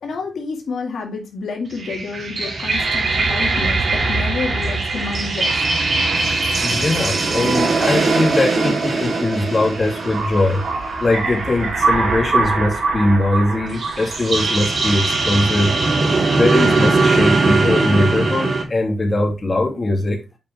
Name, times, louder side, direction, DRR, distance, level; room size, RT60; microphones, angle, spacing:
voice 1, 0.0-5.6 8.6-8.7, left 4 dB, 80° left, 2.0 m, -29 dB
sound 1, 1.7-18.6, right 3 dB, 60° right, 3.3 m, -20 dB
voice 2, 6.6-15.7 16.4-20.2, left 2 dB, 35° left, 2.7 m, -20 dB
8.5 x 5.3 x 3.4 m
wide cardioid pair, 100°, 0 cm